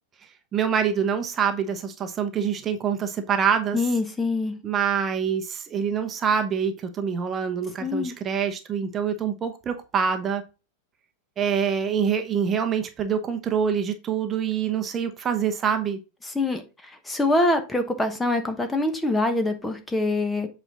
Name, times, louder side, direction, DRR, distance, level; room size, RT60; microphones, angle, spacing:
voice 1, 0.5-3.9 4.6-10.4 11.4-16.0, right 7 dB, 25° right, 0.9 m, -25 dB
voice 2, 3.7-4.5 7.8-8.1 16.3-16.6 17.1-20.5, left 2 dB, 10° left, 1.0 m, -24 dB
8.0 x 4.4 x 3.7 m
figure-of-eight pair, 90°, 0 cm